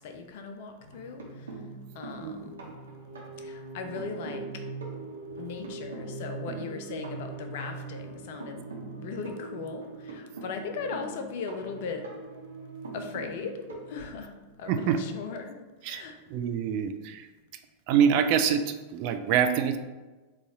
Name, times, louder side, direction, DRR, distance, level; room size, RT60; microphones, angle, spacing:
voice 1, 0.0-1.7 1.9-2.6 3.4-4.6 5.0-8.7 9.0-12.1 12.9-16.2, left 5 dB, 50° left, 5 dB, 0.4 m, -38 dB
sound 1, 0.8-14.8 16.0-16.1 16.5-16.6, right 3 dB, 70° right, 0.9 m, -41 dB
voice 2, 16.3-17.3 17.9-19.8, right 8 dB, 45° right, 7 dB, 0.3 m, -25 dB
4.0 x 2.4 x 4.0 m, 1.2 s
figure-of-eight pair, 90°, 0 cm